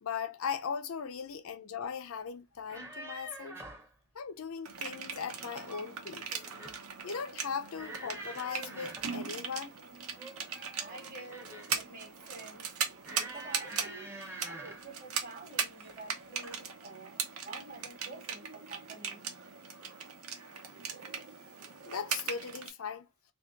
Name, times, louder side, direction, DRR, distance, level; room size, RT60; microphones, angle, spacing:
voice 1, 0.0-3.6 4.1-6.3 7.0-9.7 21.9-23.0, left 6 dB, 80° left, 0.5 m, -38 dB
sound 1, 2.6-3.9 5.4-6.0 6.3-6.8 7.8-9.2 10.2-11.8 13.0-14.9 15.8-16.1 16.4-16.6, right 1 dB, 10° right, 0.6 m, -46 dB
sound 2, 4.7-22.7, right 6 dB, 85° right, 0.9 m, -39 dB
voice 2, 10.8-12.7 13.3-14.2 14.4-19.3, right 3 dB, 40° right, 1.1 m, -48 dB
2.9 x 2.7 x 3.5 m
head